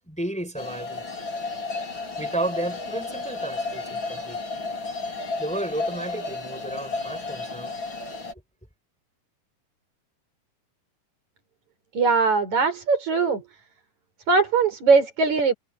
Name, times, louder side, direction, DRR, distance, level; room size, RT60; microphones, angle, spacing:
voice 1, 0.0-1.0 2.2-4.4 5.4-7.7, right 1 dB, ahead, 4.5 m, -32 dB
sound 1, 0.6-8.3, left 3 dB, 35° left, 4.6 m, -32 dB
voice 2, 11.9-13.4 14.3-15.5, right 4 dB, 55° right, 6.6 m, -20 dB
omnidirectional pair, 3.9 m